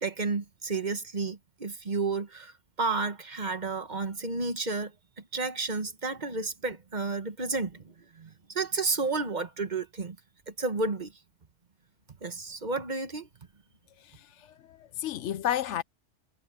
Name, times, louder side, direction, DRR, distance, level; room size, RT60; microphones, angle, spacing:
voice 1, 0.0-4.9 5.3-10.2 10.5-11.1 12.2-13.3, right 3 dB, 40° right, 1.3 m, -31 dB
voice 2, 14.0-15.8, left 11 dB, 70° left, 0.9 m, -32 dB
omnidirectional pair, 1.3 m